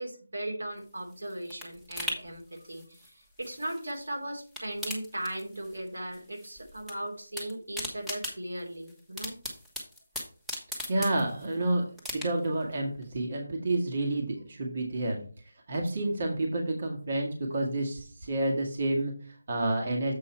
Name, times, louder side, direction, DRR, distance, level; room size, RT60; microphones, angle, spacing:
voice 1, 0.0-9.4, right 1 dB, 90° right, 1 dB, 2.9 m, -38 dB
sound 1, 0.8-4.1 4.4-5.9 6.1-6.9 7.2-11.6 12.0-12.6 13.0-13.1, left 1 dB, 5° right, 1.3 m, -39 dB
voice 2, 10.9-20.1, right 2 dB, 45° right, 1 dB, 1.8 m, -30 dB
7.8 x 5.3 x 4.4 m, 0.41 s
figure-of-eight pair, 165°, 0 cm